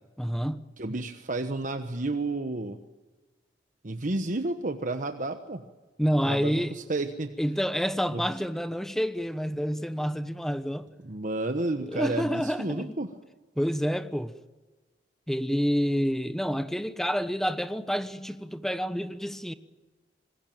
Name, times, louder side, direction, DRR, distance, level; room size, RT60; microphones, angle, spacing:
voice 1, 0.2-0.6 6.0-6.7 7.4-10.9 11.8-13.0 13.6-14.3 15.3-19.5, equal, ahead, 1.1 m, -28 dB
voice 2, 0.8-2.8 3.8-5.6 6.1-7.3 8.1-8.2 11.0-13.1, right 2 dB, 45° right, 1.2 m, -31 dB
25.5 x 21.0 x 9.0 m
head